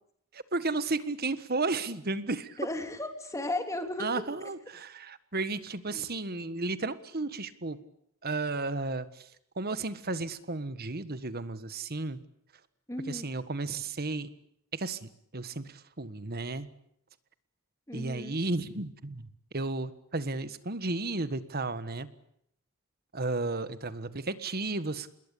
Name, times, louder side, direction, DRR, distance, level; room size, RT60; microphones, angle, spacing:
voice 1, 0.3-2.6 4.0-7.8 8.2-9.3 9.5-12.2 13.0-14.3 14.7-16.7 17.9-22.1 23.1-25.2, right 3 dB, 45° right, 13 dB, 1.5 m, -33 dB
voice 2, 2.6-4.2 5.9-6.0 12.9-13.2 17.9-18.4, left 1 dB, 15° left, 6 dB, 3.2 m, -35 dB
27.0 x 21.5 x 8.5 m, 0.74 s
head